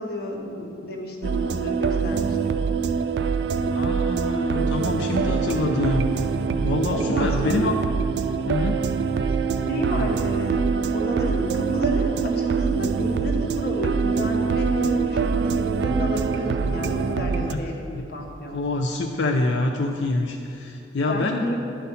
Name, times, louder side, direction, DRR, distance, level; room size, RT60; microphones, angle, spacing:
voice 1, 0.0-2.6 6.9-7.7 9.2-9.4 9.7-18.6 21.1-21.6, left 1 dB, 60° left, 1 dB, 1.0 m, -31 dB
sound 1, 1.2-17.5, right 5 dB, 70° right, 0.4 m, -24 dB
voice 2, 3.7-6.1 6.6-7.7 8.5-8.8 17.5-17.6 18.0-18.1 18.5-21.6, left 2 dB, 90° left, 3 dB, 0.5 m, -26 dB
10.5 x 4.1 x 5.6 m, 2.6 s
head